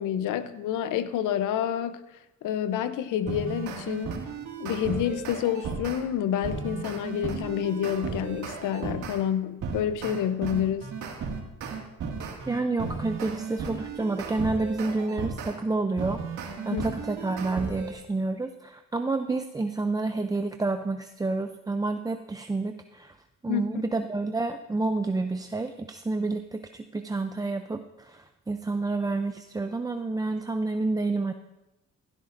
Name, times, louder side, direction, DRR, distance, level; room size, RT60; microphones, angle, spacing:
voice 1, 0.0-2.0 2.4-4.2 4.6-10.9 16.7-16.9 23.5-23.7, left 10 dB, 85° left, 12 dB, 0.8 m, -28 dB
sound 1, 3.3-6.0 6.4-9.2 9.6-15.5 16.0-17.9, right 5 dB, 70° right, 2.1 m, -35 dB
voice 2, 12.5-23.2 23.4-31.3, right 3 dB, 10° right, 6 dB, 0.5 m, -29 dB
16.5 x 12.0 x 2.6 m, 0.96 s
cardioid pair, 90°, 30 cm